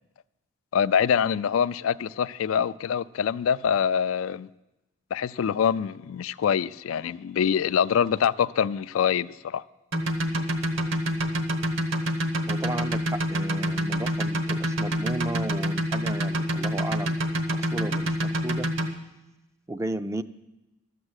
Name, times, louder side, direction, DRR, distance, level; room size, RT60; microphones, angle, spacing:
voice 1, 0.7-4.5 5.1-9.6, left 7 dB, 75° left, 0.3 m, -25 dB
sound 1, 9.9-18.9, equal, 65° right, 1.2 m, -26 dB
voice 2, 12.5-17.2 17.5-18.7 19.7-20.2, right 2 dB, 15° right, 0.4 m, -34 dB
12.5 x 7.6 x 8.0 m
head